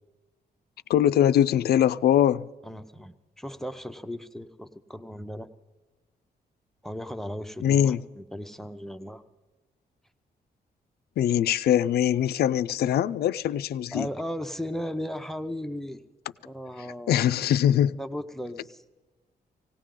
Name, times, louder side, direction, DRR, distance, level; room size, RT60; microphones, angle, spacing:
voice 1, 0.9-2.5 7.6-8.0 11.2-14.1 17.1-18.0, left 10 dB, 80° left, 0.4 m, -22 dB
voice 2, 2.6-5.5 6.8-9.2 13.9-16.0 16.4-17.3 18.0-18.8, equal, ahead, 0.6 m, -36 dB
18.0 x 17.5 x 3.8 m
cardioid pair, 130°, 16 cm